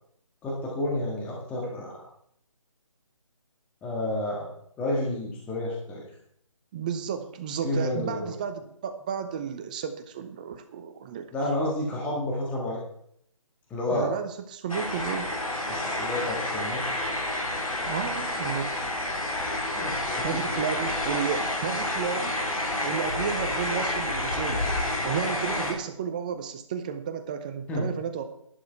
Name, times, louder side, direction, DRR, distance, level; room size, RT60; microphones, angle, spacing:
voice 1, 0.4-2.1 3.8-4.5 4.8-6.0 7.6-8.3 11.3-12.8 13.7-14.1 15.7-16.8 19.7-20.6 27.7-27.9, left 1 dB, 10° left, -3 dB, 1.7 m, -30 dB
voice 2, 6.7-11.3 13.9-15.3 17.9-18.8 20.2-22.4 22.8-24.7 25.0-28.2, right 7 dB, 15° right, 9 dB, 0.6 m, -32 dB
sound 1, 14.7-25.7, left 1 dB, 85° left, 4.0 m, -29 dB
11.0 x 10.5 x 4.6 m, 0.69 s
figure-of-eight pair, 155°, 18 cm